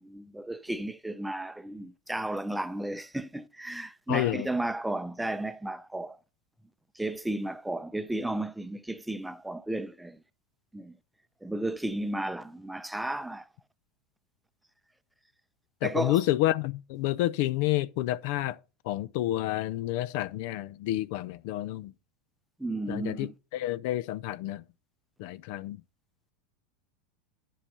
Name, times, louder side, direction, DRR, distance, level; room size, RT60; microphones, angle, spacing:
voice 1, 0.0-6.2 7.0-10.2 10.7-10.9 11.4-13.5 15.8-16.2 22.6-23.3, right 1 dB, 5° right, 0.6 m, -33 dB
voice 2, 4.1-4.5 15.8-18.6 18.8-21.9 22.9-24.6 25.2-25.8, left 15 dB, 65° left, 0.4 m, -29 dB
10.0 x 5.5 x 5.3 m
supercardioid pair, 115°, 0 cm